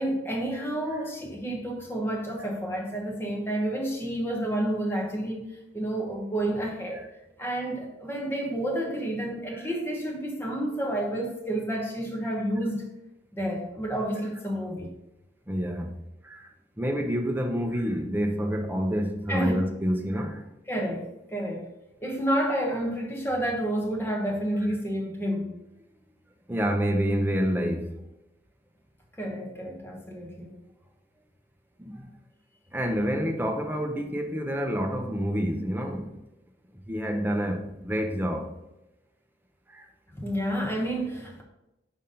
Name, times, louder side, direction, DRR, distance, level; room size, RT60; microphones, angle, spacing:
voice 1, 0.0-7.0 7.4-12.8 13.3-14.9 19.3-19.6 20.7-21.0 21.3-21.6 22.0-25.5 29.2-30.5 40.1-41.4, right 1 dB, 15° left, 0 dB, 1.1 m, -30 dB
voice 2, 15.5-15.9 16.2-16.5 16.8-20.4 26.5-27.9 31.8-32.1 32.7-36.1 36.9-38.5 39.7-39.9, equal, 10° right, 3 dB, 0.6 m, -28 dB
5.6 x 3.5 x 5.3 m, 0.93 s
head